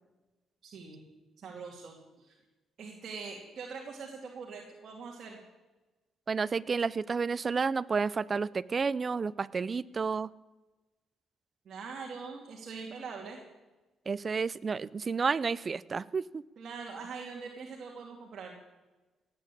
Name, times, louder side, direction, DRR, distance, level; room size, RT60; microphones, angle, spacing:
voice 1, 0.6-1.0 1.4-2.3 2.8-5.4 11.6-13.4 16.6-18.5, right 5 dB, 55° right, -1 dB, 2.8 m, -43 dB
voice 2, 6.3-10.3 14.1-16.4, right 5 dB, 35° right, 20 dB, 0.5 m, -31 dB
17.5 x 9.2 x 8.5 m, 1.2 s
cardioid pair, 90°, 0 cm